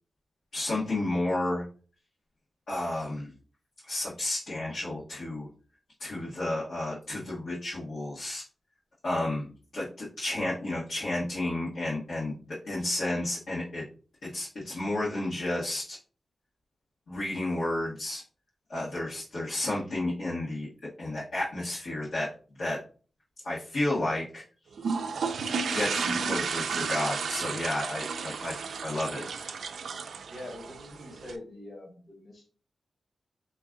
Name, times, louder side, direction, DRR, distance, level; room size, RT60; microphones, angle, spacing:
voice 1, 0.5-1.6 2.7-3.3 3.9-5.5 6.0-8.4 9.0-13.8 14.2-16.0 17.1-18.2 18.7-20.7 21.0-22.3 22.6-22.8 23.4-24.4 25.7-28.6 28.8-29.2, left 1 dB, 75° left, -8 dB, 1.4 m, -31 dB
sound 1, 24.8-31.4, right 5 dB, 80° right, 0.4 m, -32 dB
voice 2, 30.3-32.5, left 1 dB, 40° left, 0 dB, 1.3 m, -44 dB
3.6 x 3.0 x 3.6 m, 0.39 s
cardioid pair, 85°, 0 cm